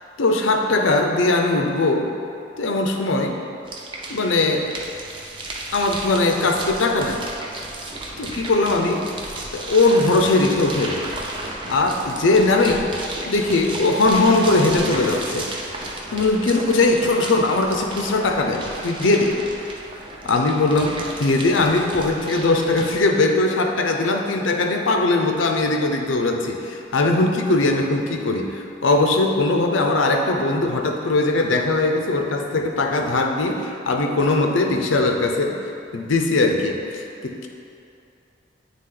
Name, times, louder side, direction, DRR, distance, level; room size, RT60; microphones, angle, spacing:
voice 1, 0.2-2.1 2.6-3.4 4.1-4.7 5.7-7.2 8.2-9.1 9.5-11.1 11.7-12.9 13.3-15.5 16.1-19.4 20.2-35.6 35.9-37.5, left 2 dB, 90° left, 3 dB, 0.6 m, -20 dB
sound 1, 3.6-23.0, right 2 dB, 25° right, 0.6 m, -33 dB
9.2 x 3.5 x 3.8 m, 2.7 s
head